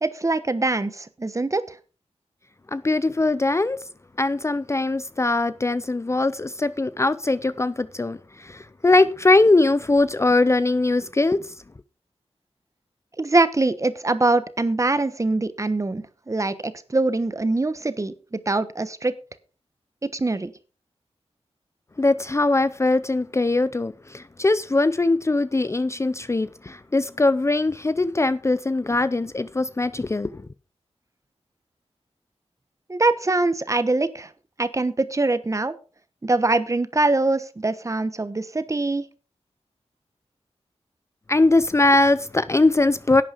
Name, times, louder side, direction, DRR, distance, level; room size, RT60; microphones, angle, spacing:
voice 1, 0.0-1.8 13.2-19.1 20.1-20.5 32.9-34.3 34.6-35.8 36.2-39.0, right 2 dB, 30° right, 1.1 m, -23 dB
voice 2, 2.7-3.8 4.2-11.5 22.0-30.4 41.3-43.2, left 2 dB, 25° left, 0.5 m, -21 dB
11.0 x 8.6 x 5.0 m
wide cardioid pair, 100°, 11 cm